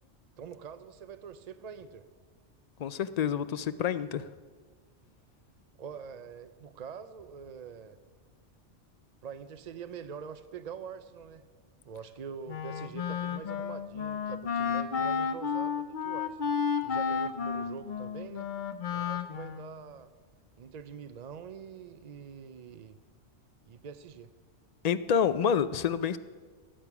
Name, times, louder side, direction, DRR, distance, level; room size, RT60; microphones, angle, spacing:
voice 1, 0.4-2.0 5.8-8.0 9.2-11.4 11.8-16.5 16.8-18.5 18.9-20.1 20.6-23.0 23.7-24.3, right 7 dB, 50° right, 11 dB, 0.5 m, -44 dB
voice 2, 2.8-4.3 24.8-26.2, left 7 dB, 75° left, 13 dB, 0.3 m, -28 dB
Wind instrument woodwind instrument, 12.5-19.8, left 6 dB, 50° left, 0.8 m, -32 dB
19.0 x 8.9 x 6.0 m, 1.5 s
omnidirectional pair, 1.2 m